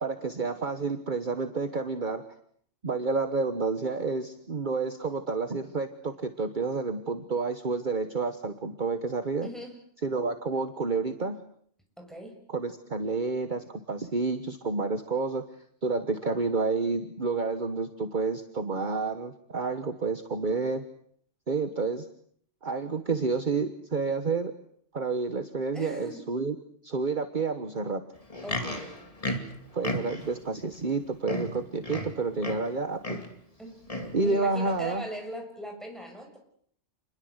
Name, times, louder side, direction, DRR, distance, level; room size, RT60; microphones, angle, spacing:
voice 1, 0.0-2.3 2.8-9.5 10.0-11.4 12.5-15.4 15.8-20.8 21.5-22.1 22.6-24.5 24.9-26.5 26.8-28.0 29.7-33.0 34.1-35.0, right 4 dB, 40° right, 8 dB, 1.5 m, -29 dB
voice 2, 9.4-9.8 12.0-12.4 25.7-26.2 28.4-28.9 33.6-33.8 34.2-36.4, equal, ahead, 2 dB, 7.5 m, -40 dB
Livestock farm animals working animals, 28.2-30.4 30.9-31.0 31.2-32.7 33.0-33.4 33.9-34.2 34.9-35.0, left 1 dB, 30° left, 2.7 m, -34 dB
28.5 x 21.5 x 8.1 m, 0.64 s
omnidirectional pair, 1.2 m